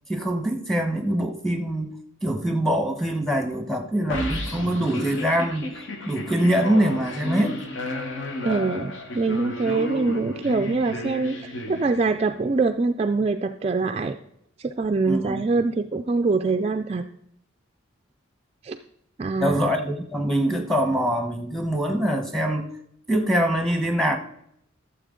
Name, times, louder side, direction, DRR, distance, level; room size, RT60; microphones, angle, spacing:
voice 1, 0.1-5.7 6.1-7.6 15.1-15.3 19.4-22.7 23.1-24.2, right 1 dB, ahead, 5 dB, 1.0 m, -24 dB
sound 1, 4.1-12.4, left 1 dB, 65° left, 1.2 m, -33 dB
voice 2, 8.4-14.2 14.6-17.0 18.6-18.8 19.2-19.7, right 3 dB, 30° right, 7 dB, 0.3 m, -24 dB
13.0 x 7.0 x 3.8 m, 0.73 s
head